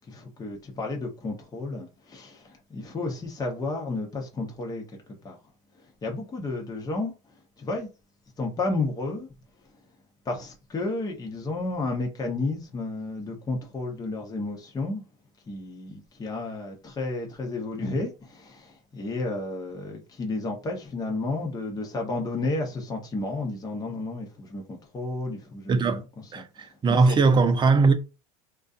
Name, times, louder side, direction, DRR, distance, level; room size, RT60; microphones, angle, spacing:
voice 1, 0.1-4.8 5.2-5.4 6.0-7.1 7.6-7.9 8.4-9.3 10.3-15.0 15.5-27.2, left 2 dB, 20° left, 0.8 m, -32 dB
voice 2, 25.7-26.0 26.3-27.9, right 4 dB, 25° right, 0.5 m, -20 dB
2.5 x 2.3 x 2.4 m
hypercardioid pair, 90°, 20 cm